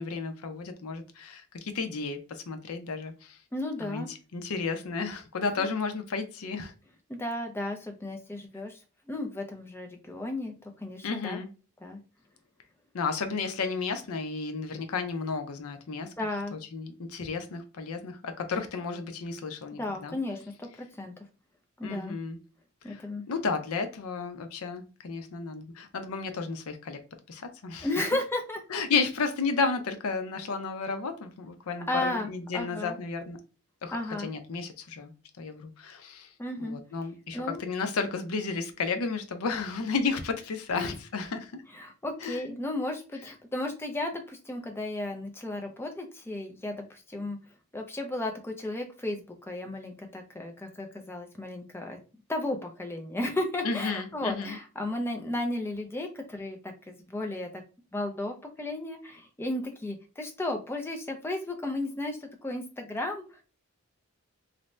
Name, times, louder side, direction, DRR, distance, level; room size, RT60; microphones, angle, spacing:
voice 1, 0.0-3.4 3.8-6.7 11.0-11.5 12.9-16.1 16.5-20.2 21.8-22.4 22.8-27.0 27.3-27.9 28.7-33.4 33.8-35.1 35.4-36.3 36.6-41.6 42.2-42.4 53.6-54.6, left 4 dB, 80° left, 0.5 m, -33 dB
voice 2, 3.5-4.1 7.1-8.8 9.1-11.4 11.8-12.0 16.2-16.6 19.8-21.1 21.8-22.2 22.8-23.2 27.8-28.6 31.9-33.0 33.9-34.3 36.4-36.8 37.3-37.7 40.7-40.9 41.7-47.4 47.7-52.0 52.3-57.5 57.9-63.4, left 1 dB, 10° left, 0.4 m, -34 dB
2.6 x 2.1 x 3.1 m
head